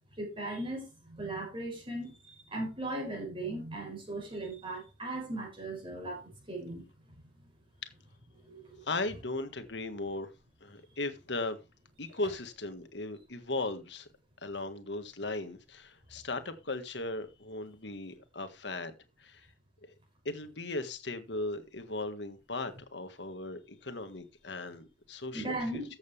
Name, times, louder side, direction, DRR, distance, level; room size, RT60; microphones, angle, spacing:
voice 1, 0.2-6.8 8.4-8.9 25.3-25.8, right 2 dB, 30° right, 6.6 m, -38 dB
voice 2, 8.9-10.3 10.6-11.6 12.0-14.1 14.4-19.5 19.8-19.9 20.3-25.8, left 2 dB, 75° left, 1.7 m, -37 dB
14.5 x 8.0 x 3.4 m
head